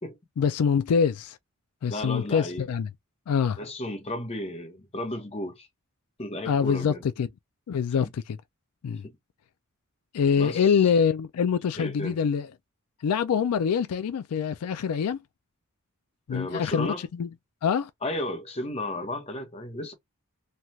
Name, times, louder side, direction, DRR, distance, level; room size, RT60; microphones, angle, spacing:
voice 1, 0.4-1.4 1.8-2.9 3.3-3.6 6.5-7.3 7.7-8.4 8.8-9.0 10.1-12.5 13.0-15.2 16.3-17.3 17.6-17.9, left 7 dB, 85° left, 0.4 m, -25 dB
voice 2, 1.9-2.7 3.6-5.7 6.2-7.0 9.0-9.1 10.4-10.9 11.8-12.2 16.3-17.0 18.0-19.9, left 1 dB, 25° left, 1.0 m, -33 dB
3.2 x 2.3 x 2.7 m
head